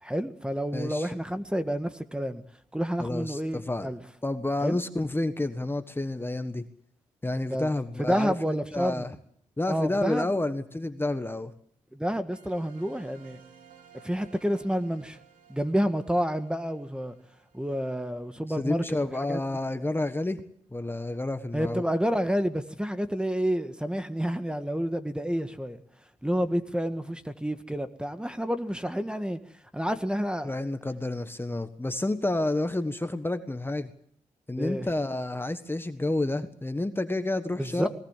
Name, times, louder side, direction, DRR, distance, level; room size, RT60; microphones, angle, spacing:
voice 1, 0.0-2.4 2.7-4.0 4.6-4.8 7.5-7.7 8.0-9.1 9.7-10.3 11.9-13.4 14.0-15.2 15.5-17.1 17.5-18.8 19.3-19.4 21.5-25.8 26.2-29.4 29.7-30.5 34.6-34.9 37.6-37.9, equal, 5° right, 1.6 m, -29 dB
voice 2, 0.7-1.1 3.0-3.9 4.2-6.6 7.2-9.1 9.6-11.5 18.6-20.4 20.7-21.8 30.4-33.9 34.5-37.9, left 2 dB, 15° left, 1.5 m, -30 dB
sound 1, 12.3-19.4, right 7 dB, 80° right, 3.7 m, -57 dB
21.0 x 18.5 x 7.4 m
cardioid pair, 65°, 14 cm